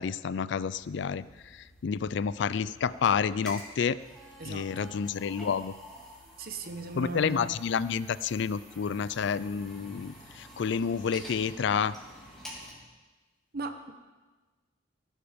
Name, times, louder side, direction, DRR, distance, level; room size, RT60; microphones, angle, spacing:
voice 1, 0.0-4.0 4.4-5.7 7.0-12.0, left 6 dB, 65° left, 17 dB, 0.4 m, -29 dB
sound 1, 0.7-12.7, equal, 5° left, 3.5 m, -49 dB
voice 2, 4.4-4.9 6.4-7.5 13.5-13.9, right 3 dB, 55° right, 8 dB, 1.0 m, -38 dB
16.5 x 11.5 x 5.2 m, 1.3 s
head